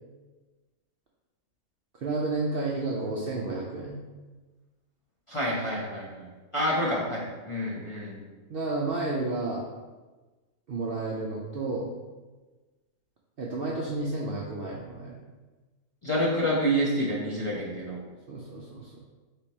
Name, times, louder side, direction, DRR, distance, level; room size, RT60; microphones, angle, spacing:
voice 1, 2.0-4.0 8.5-9.7 10.7-11.9 13.4-15.2 18.3-18.9, right 2 dB, 65° right, -3 dB, 0.6 m, -31 dB
voice 2, 5.3-8.2 16.0-18.0, equal, 30° left, -7 dB, 0.6 m, -28 dB
3.5 x 3.2 x 4.1 m, 1.3 s
omnidirectional pair, 1.5 m